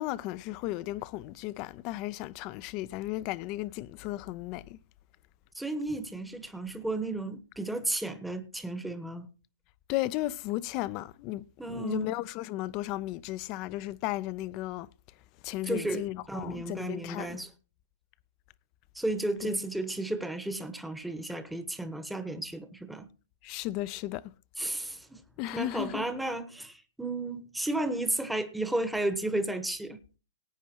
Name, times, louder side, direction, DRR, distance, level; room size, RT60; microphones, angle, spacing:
voice 1, 0.0-4.8 9.9-14.9 15.4-17.4 19.4-19.6 23.4-24.2 25.4-26.1, left 16 dB, 40° left, 0.6 m, -35 dB
voice 2, 5.6-9.3 11.6-12.1 15.7-17.5 18.9-23.1 24.6-25.2 25.5-30.0, right 2 dB, 5° right, 1.1 m, -33 dB
19.0 x 9.2 x 2.9 m
figure-of-eight pair, 110°, 0 cm